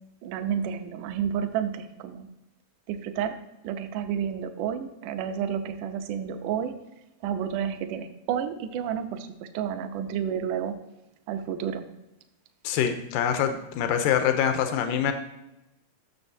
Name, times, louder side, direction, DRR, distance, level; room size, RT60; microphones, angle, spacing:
voice 1, 0.2-2.3 2.9-3.4 3.6-6.7 7.2-10.7 11.3-11.9, right 8 dB, 85° right, 7 dB, 1.8 m, -30 dB
voice 2, 12.6-15.1, left 9 dB, 90° left, 7 dB, 1.9 m, -25 dB
14.0 x 6.6 x 2.7 m, 0.93 s
omnidirectional pair, 4.5 m